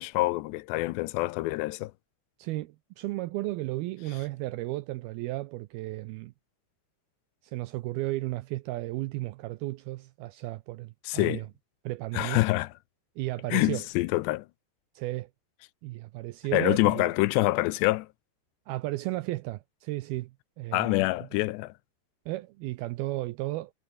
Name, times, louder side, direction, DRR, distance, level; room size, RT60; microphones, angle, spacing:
voice 1, 0.0-1.9 11.0-11.5 12.1-12.7 13.5-14.5 16.5-18.1 20.7-21.7, left 20 dB, 85° left, 2.8 m, -26 dB
voice 2, 2.4-6.3 7.4-11.5 11.9-12.4 13.2-13.8 15.0-15.3 15.8-17.1 18.7-21.0 21.3-21.4 22.3-23.7, right 18 dB, 90° right, 2.2 m, -34 dB
omnidirectional pair, 5.0 m